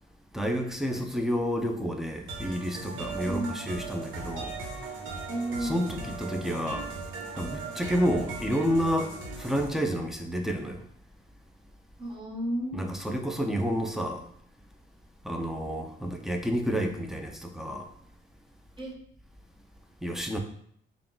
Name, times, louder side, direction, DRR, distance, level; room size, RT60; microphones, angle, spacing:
voice 1, 0.3-4.5 5.6-6.9 7.4-9.1 9.4-10.8 12.7-14.2 15.2-17.9 20.0-20.4, equal, ahead, 3 dB, 0.5 m, -30 dB
sound 1, 2.3-9.7, right 3 dB, 85° right, 0.9 m, -38 dB
voice 2, 3.2-3.6 5.3-5.8 12.0-12.8 18.8-18.9, right 1 dB, 25° right, -1 dB, 0.9 m, -32 dB
3.5 x 2.3 x 3.7 m, 0.65 s
cardioid pair, 90°, 20 cm